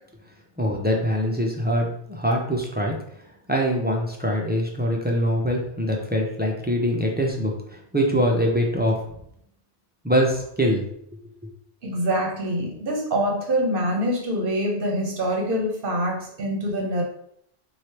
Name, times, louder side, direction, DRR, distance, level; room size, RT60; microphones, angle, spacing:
voice 1, 0.6-2.9 3.5-9.0 10.0-10.8, equal, 15° right, 0 dB, 0.3 m, -23 dB
voice 2, 11.8-17.0, equal, 60° right, 0 dB, 0.9 m, -25 dB
3.1 x 2.7 x 4.3 m, 0.71 s
omnidirectional pair, 1.1 m